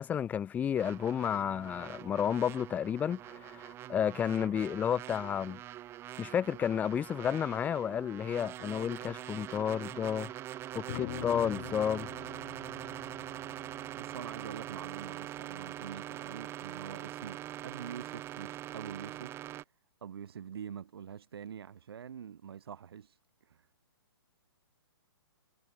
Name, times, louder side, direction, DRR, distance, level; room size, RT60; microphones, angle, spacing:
voice 1, 0.0-5.6 6.2-10.3 10.7-12.1, left 8 dB, 10° left, 0.7 m, -31 dB
sound 1, 0.8-19.6, right 13 dB, 20° right, 0.9 m, -43 dB
sound 2, 10.9-15.4, left 16 dB, 40° left, 4.6 m, -45 dB
voice 2, 14.0-19.5 20.0-23.7, right 8 dB, 65° right, 3.3 m, -45 dB
hypercardioid pair, 145°, 13 cm